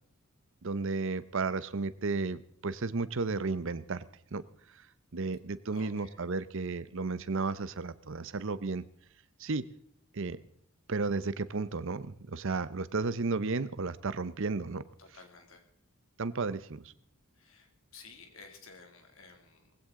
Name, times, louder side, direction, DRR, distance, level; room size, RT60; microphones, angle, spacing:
voice 1, 0.6-4.0 4.3-4.4 5.1-8.8 9.4-9.6 10.1-10.4 10.9-14.8 16.2-16.8, right 3 dB, 60° right, 15 dB, 0.7 m, -33 dB
voice 2, 5.7-6.3 15.0-15.6 17.3-19.8, left 4 dB, 65° left, 5 dB, 2.4 m, -54 dB
19.0 x 16.0 x 3.7 m, 0.63 s
head